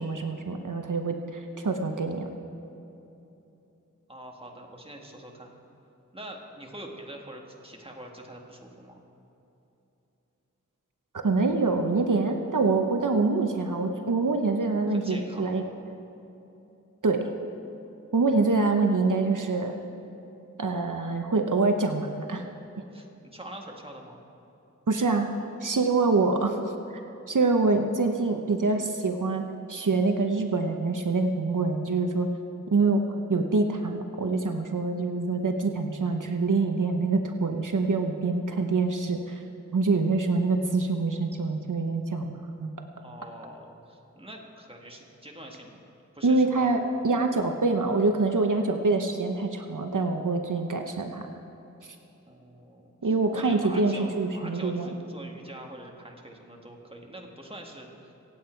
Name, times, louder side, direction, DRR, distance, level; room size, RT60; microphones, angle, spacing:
voice 1, 0.0-2.3 11.2-15.6 17.0-17.3 18.1-19.8 20.6-22.4 24.9-25.3 25.6-26.6 26.9-27.0 27.3-29.4 29.7-32.3 32.7-33.0 33.3-39.4 39.7-42.7 46.2-51.2 53.0-54.9, right 3 dB, 75° right, 5 dB, 0.9 m, -25 dB
voice 2, 4.1-5.5 6.1-9.0 14.9-15.5 22.9-24.2 43.0-45.8 46.1-46.7 52.3-58.1, right 1 dB, 20° right, 0 dB, 1.8 m, -44 dB
25.5 x 8.7 x 4.5 m, 3.0 s
wide cardioid pair, 55°, 31 cm